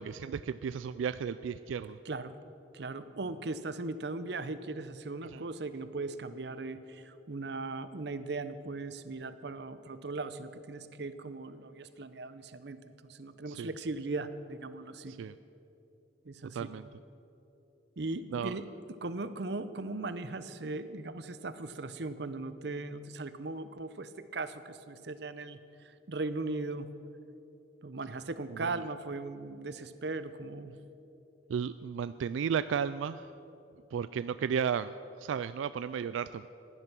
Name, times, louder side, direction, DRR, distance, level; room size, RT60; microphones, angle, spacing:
voice 1, 0.0-2.0 5.3-5.4 13.5-13.7 15.1-15.3 16.5-16.9 18.3-18.5 28.5-28.8 31.5-33.3 33.9-34.9 35.2-36.5, right 7 dB, 85° right, 14 dB, 0.3 m, -34 dB
voice 2, 2.7-12.8 13.0-15.1 16.3-16.7 18.0-18.6 19.0-26.9 27.8-30.7, right 3 dB, 60° right, 12 dB, 0.7 m, -38 dB
16.0 x 11.0 x 6.1 m, 3.0 s
head